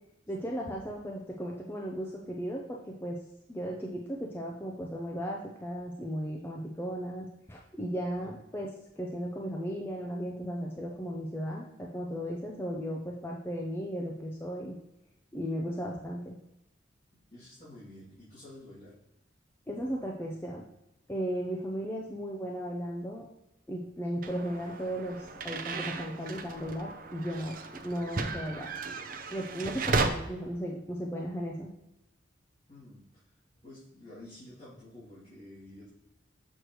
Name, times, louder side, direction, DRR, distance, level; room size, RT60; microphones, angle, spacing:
voice 1, 0.3-3.2 3.5-8.7 9.0-14.8 15.3-16.4 19.7-20.6 21.1-23.3 23.7-27.6 27.8-28.7 29.3-31.7, equal, 10° left, -2 dB, 0.5 m, -36 dB
voice 2, 17.3-18.9 32.7-35.9, left 1 dB, 40° left, -13 dB, 2.6 m, -50 dB
sound 1, 24.2-30.1, right 3 dB, 45° right, 0.5 m, -35 dB
6.5 x 6.4 x 3.1 m, 0.89 s
head